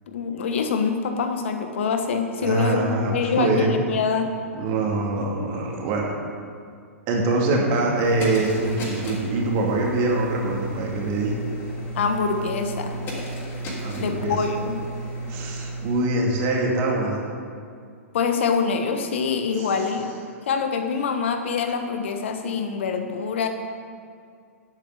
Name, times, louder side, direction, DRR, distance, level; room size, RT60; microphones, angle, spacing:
voice 1, 0.1-4.3 11.9-13.0 14.0-14.8 18.1-20.1 20.5-23.5, left 5 dB, 55° left, 6 dB, 1.3 m, -25 dB
voice 2, 2.4-3.7 4.5-6.1 7.1-11.4 13.8-14.4 15.3-17.2 19.5-19.7, right 2 dB, 35° right, -1 dB, 2.5 m, -24 dB
sound 1, 8.0-16.1, right 1 dB, 25° left, 3.2 m, -33 dB
10.5 x 8.4 x 6.6 m, 2.3 s
figure-of-eight pair, 105°, 8 cm